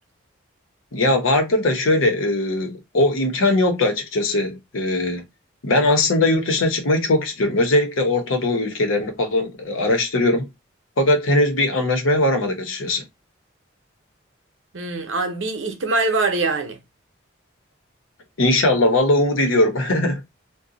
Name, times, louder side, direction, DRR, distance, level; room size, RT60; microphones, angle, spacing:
voice 1, 0.9-5.2 5.6-10.5 11.0-13.0 18.4-20.2, left 2 dB, 85° left, 0.9 m, -20 dB
voice 2, 14.7-16.8, right 3 dB, 70° right, 0.7 m, -23 dB
2.6 x 2.2 x 3.9 m
head